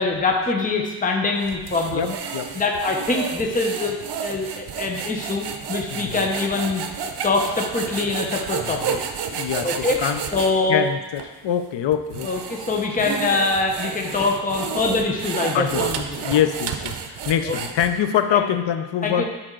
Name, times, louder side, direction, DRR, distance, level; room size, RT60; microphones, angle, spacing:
voice 1, 0.0-2.1 2.5-6.8 7.2-9.0 9.6-10.0 10.3-10.8 12.2-16.1 17.4-17.6 18.3-18.4 19.0-19.2, left 3 dB, 20° left, 1 dB, 0.7 m, -24 dB
sound 1, 1.4-10.5 11.2-11.3 11.9-18.2, right 7 dB, 70° right, 0.7 m, -31 dB
voice 2, 1.9-2.6 5.9-6.2 8.6-8.8 9.3-10.2 10.7-12.3 14.0-14.2 14.7-14.8 15.5-15.9 16.2-19.2, left 9 dB, 85° left, 9 dB, 0.6 m, -24 dB
9.2 x 4.4 x 3.8 m, 1.1 s
wide cardioid pair, 120°, 41 cm